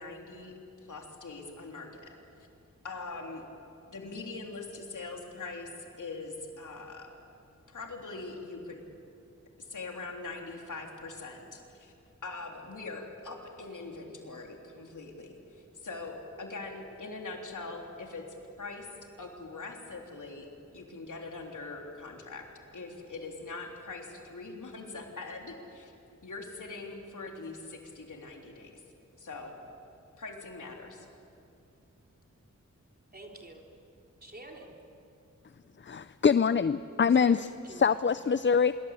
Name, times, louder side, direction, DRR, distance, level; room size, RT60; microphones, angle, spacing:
voice 1, 0.0-2.1 2.8-3.4 3.9-7.2 7.7-8.8 9.6-11.9 12.2-18.3 18.6-18.9 19.2-22.5 22.7-25.9 26.2-28.8 29.2-29.5 30.2-31.1, left 3 dB, 90° left, 1 dB, 3.6 m, -42 dB
voice 2, 33.1-33.6 34.2-34.8 37.1-38.2, right 2 dB, 30° right, 0 dB, 3.9 m, -47 dB
voice 3, 35.8-37.4 37.8-38.7, left 6 dB, 40° left, 14 dB, 0.5 m, -24 dB
26.0 x 23.0 x 8.4 m, 2.6 s
wide cardioid pair, 80°, 30 cm